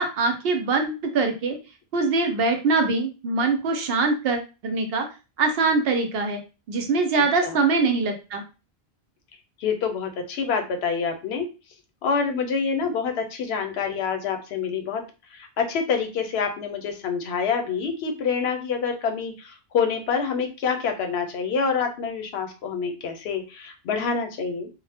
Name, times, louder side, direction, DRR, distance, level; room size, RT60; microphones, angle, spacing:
voice 1, 0.0-1.6 1.9-5.1 5.4-6.4 6.7-8.4, right 3 dB, 70° right, 5 dB, 0.8 m, -23 dB
voice 2, 7.1-7.6 9.6-11.5 12.0-15.0 15.3-24.7, left 5 dB, 85° left, 5 dB, 0.8 m, -27 dB
2.0 x 2.0 x 3.3 m, 0.31 s
omnidirectional pair, 1.0 m